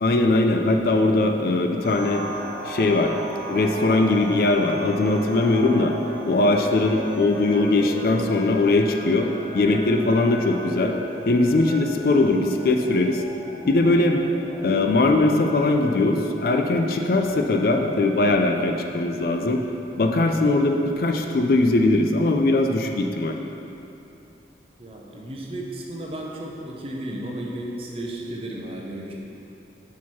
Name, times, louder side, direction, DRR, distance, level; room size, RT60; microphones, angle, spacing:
voice 1, 0.0-2.2 2.6-3.1 3.5-5.9 6.2-9.3 9.5-10.9 11.3-13.2 13.7-14.2 14.6-19.6 20.0-23.4, left 2 dB, 55° left, 3 dB, 0.4 m, -20 dB
sound 1, 1.8-20.9, right 1 dB, 80° right, 1.5 m, -37 dB
voice 2, 24.8-29.1, right 1 dB, 30° right, -2 dB, 0.6 m, -34 dB
5.6 x 4.6 x 4.5 m, 2.9 s
head